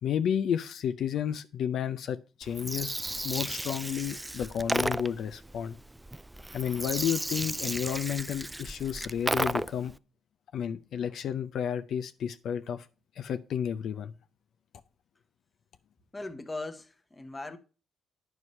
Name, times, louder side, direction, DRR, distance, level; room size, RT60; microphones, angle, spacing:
voice 1, 0.0-3.0 3.2-5.8 6.5-9.9 10.5-12.9 13.2-14.1, left 8 dB, 70° left, 0.5 m, -31 dB
Gurgling, 2.4-9.9, right 1 dB, 10° right, 0.3 m, -34 dB
voice 2, 16.1-17.6, left 2 dB, 20° left, 1.0 m, -39 dB
9.7 x 4.7 x 5.4 m
cardioid pair, 90°, 0 cm